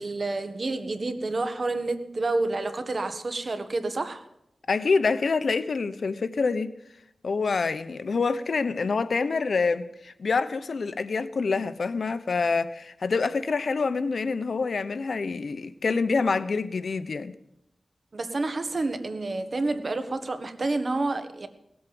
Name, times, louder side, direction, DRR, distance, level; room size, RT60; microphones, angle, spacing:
voice 1, 0.0-4.3 18.1-21.5, right 2 dB, 55° right, 1.5 m, -29 dB
voice 2, 4.7-6.7 7.2-17.3, left 4 dB, 75° left, 0.9 m, -26 dB
18.0 x 8.3 x 7.7 m
wide cardioid pair, 85°, 0 cm